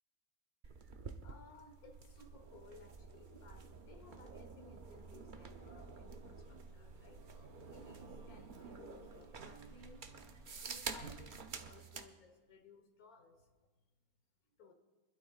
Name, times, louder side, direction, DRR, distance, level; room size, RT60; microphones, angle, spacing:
sound 1, 0.6-12.1, right 4 dB, 40° right, 0.8 m, -50 dB
voice 1, 1.2-10.1 10.6-13.5 14.6-14.7, left 3 dB, 75° left, 6 dB, 1.8 m, -60 dB
Buzz, 1.8-11.7, right 3 dB, 85° right, 1.6 m, -58 dB
25.0 x 12.5 x 2.4 m, 1.3 s
omnidirectional pair, 1.6 m